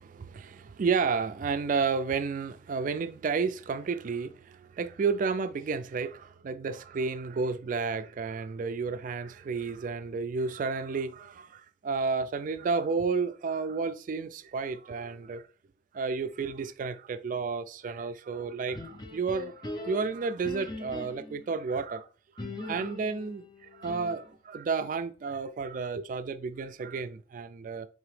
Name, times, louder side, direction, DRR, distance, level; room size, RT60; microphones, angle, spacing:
voice 1, 0.0-15.4 15.9-22.1 22.4-27.9, right 5 dB, 45° right, 0.3 m, -32 dB
sound 1, 18.7-21.5 22.4-24.4, left 2 dB, 20° left, 0.5 m, -41 dB
4.1 x 2.9 x 3.1 m
head